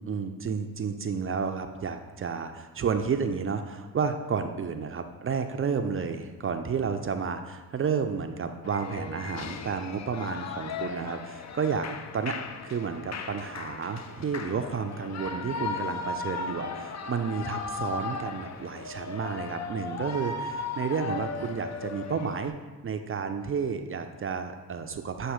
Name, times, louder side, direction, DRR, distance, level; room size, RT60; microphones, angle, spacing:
voice 1, 0.0-11.9 12.1-12.4 12.6-22.5 22.8-25.3, right 6 dB, 35° right, 7 dB, 0.4 m, -31 dB
Shout / Cheering, 8.6-22.5, left 4 dB, 45° left, 0.5 m, -37 dB
7.3 x 2.6 x 5.0 m, 1.3 s
supercardioid pair, 60°, 41 cm